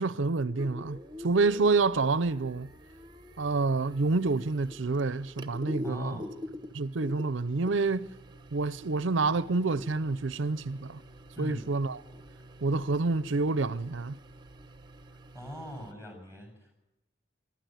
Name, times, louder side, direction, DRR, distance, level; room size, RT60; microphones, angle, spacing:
voice 1, 0.0-2.7 3.4-6.2 6.7-8.1 8.5-11.0 11.4-12.0 12.6-14.2, right 3 dB, 75° right, 0.6 m, -28 dB
sound 1, 0.6-15.9, left 1 dB, 20° right, 1.0 m, -46 dB
voice 2, 5.8-6.3 11.4-11.7 15.3-16.8, equal, 15° left, 7.6 m, -40 dB
24.5 x 12.0 x 9.2 m
head